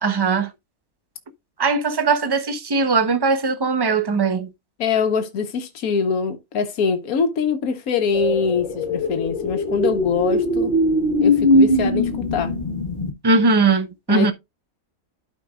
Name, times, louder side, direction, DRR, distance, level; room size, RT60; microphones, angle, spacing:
voice 1, 0.0-0.5 1.6-4.5 13.2-14.3, right 4 dB, 20° right, 0.7 m, -19 dB
voice 2, 4.8-10.7 11.2-12.5 14.1-14.3, left 5 dB, 80° left, 1.5 m, -23 dB
sound 1, 8.1-13.1, left 1 dB, 35° left, 1.4 m, -20 dB
12.5 x 5.1 x 2.4 m
omnidirectional pair, 1.5 m